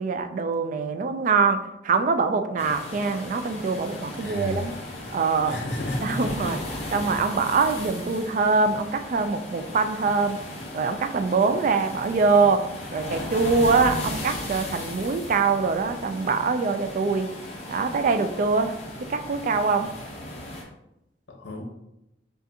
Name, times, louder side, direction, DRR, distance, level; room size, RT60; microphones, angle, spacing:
voice 1, 0.0-4.7 5.1-5.6 6.0-6.6 6.9-10.4 10.7-12.6 12.9-17.3 17.7-18.7 19.1-19.9, right 4 dB, 45° right, 8 dB, 0.3 m, -23 dB
sound 1, 2.6-20.6, left 1 dB, 35° left, 0.8 m, -36 dB
voice 2, 4.2-4.7 5.5-6.4 21.3-21.6, left 1 dB, 70° left, 1 dB, 0.8 m, -32 dB
4.9 x 2.5 x 2.7 m, 0.86 s
head